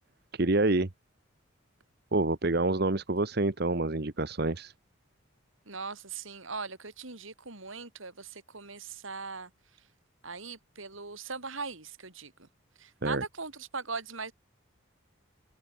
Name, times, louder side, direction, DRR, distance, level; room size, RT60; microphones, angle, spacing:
voice 1, 0.3-0.9 2.1-4.7 13.0-13.2, right 2 dB, 50° right, 1.1 m, -27 dB
voice 2, 5.7-9.5 10.2-12.5 12.8-14.3, right 4 dB, 70° right, 3.9 m, -40 dB
head